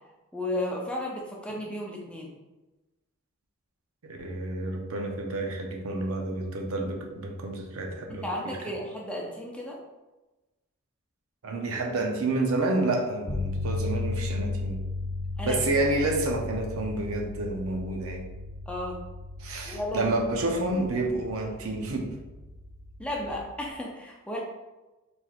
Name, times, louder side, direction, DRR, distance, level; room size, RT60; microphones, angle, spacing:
voice 1, 0.3-2.3 8.1-9.8 15.4-15.6 18.7-19.0 19.7-20.1 23.0-24.4, left 1 dB, 5° left, -2 dB, 0.5 m, -33 dB
voice 2, 4.0-8.6 11.4-14.8 15.4-18.3 19.4-22.1, right 2 dB, 80° right, 2 dB, 0.6 m, -29 dB
sound 1, 13.3-23.4, left 2 dB, 45° left, 0.8 m, -35 dB
4.2 x 3.2 x 2.4 m, 1.1 s
head